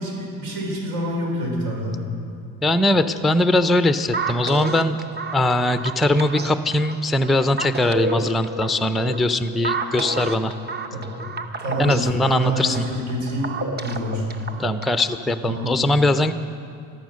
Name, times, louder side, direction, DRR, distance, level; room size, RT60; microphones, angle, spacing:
voice 1, 0.0-2.0 10.9-11.1 11.6-14.3 15.4-15.8, equal, 80° right, -1 dB, 4.8 m, -27 dB
voice 2, 2.6-5.0 5.3-10.5 11.8-12.8 14.6-16.3, left 1 dB, ahead, 10 dB, 0.5 m, -21 dB
sound 1, 4.1-15.2, right 3 dB, 25° right, 1.0 m, -31 dB
13.5 x 13.0 x 6.3 m, 2.3 s
cardioid pair, 105°, 36 cm